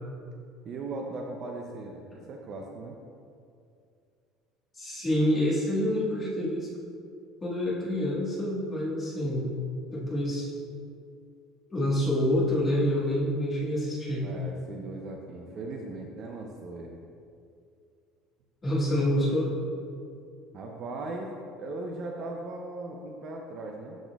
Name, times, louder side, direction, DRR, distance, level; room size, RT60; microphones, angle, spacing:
voice 1, 0.6-3.0 14.2-17.0 20.5-21.3 21.6-24.0, right 2 dB, 35° right, 1 dB, 0.4 m, -38 dB
voice 2, 4.7-6.7 7.4-9.5 9.9-10.5 11.7-14.3 18.6-19.6, left 1 dB, 15° left, -8 dB, 1.6 m, -27 dB
12.0 x 4.1 x 2.3 m, 2.4 s
cardioid pair, 170°, 0 cm